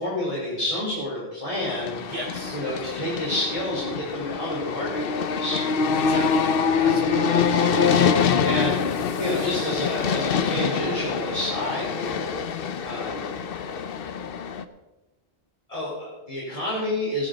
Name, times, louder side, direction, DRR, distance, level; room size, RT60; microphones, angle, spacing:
voice 1, 0.0-2.0 2.5-5.7 8.4-8.9 9.2-12.3 12.8-13.3 15.7-17.3, left 1 dB, 35° left, -7 dB, 4.5 m, -29 dB
sound 1, 1.5-14.6, left 6 dB, 65° left, 0.9 m, -25 dB
voice 2, 2.1-3.0 5.9-7.5 12.5-12.7, equal, 70° right, -2 dB, 3.5 m, -38 dB
17.5 x 10.5 x 4.0 m, 1.1 s
omnidirectional pair, 1.1 m